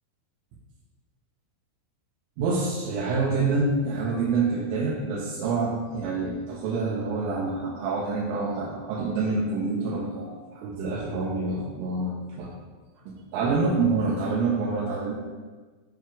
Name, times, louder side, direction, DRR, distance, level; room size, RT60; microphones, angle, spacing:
voice 1, 2.4-12.5 13.1-15.1, right 3 dB, 80° right, -5 dB, 3.1 m, -27 dB
8.8 x 4.6 x 2.3 m, 1.3 s
omnidirectional pair, 6.0 m